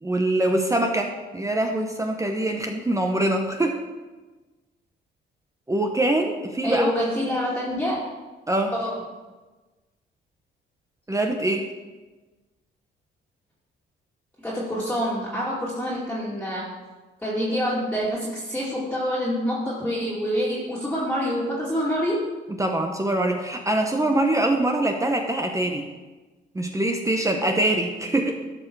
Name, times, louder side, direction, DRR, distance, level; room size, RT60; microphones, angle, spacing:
voice 1, 0.0-3.8 5.7-6.9 8.5-8.7 11.1-11.7 22.6-25.9 26.5-28.4, right 1 dB, 15° right, 3 dB, 0.9 m, -24 dB
voice 2, 6.6-8.0 8.7-8.9 14.4-16.7 17.2-22.2, equal, 5° left, -7 dB, 2.4 m, -26 dB
12.0 x 5.7 x 4.7 m, 1.2 s
cardioid pair, 90°, 20 cm